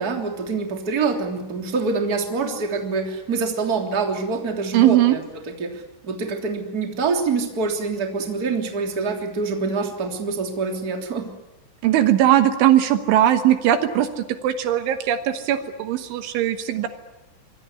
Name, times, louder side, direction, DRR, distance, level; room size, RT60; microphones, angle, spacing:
voice 1, 0.0-5.2 5.6-11.3, right 4 dB, 25° right, 3 dB, 2.8 m, -25 dB
voice 2, 4.7-5.2 11.8-16.9, right 12 dB, 75° right, 8 dB, 3.5 m, -19 dB
25.5 x 22.5 x 9.8 m, 0.98 s
omnidirectional pair, 5.8 m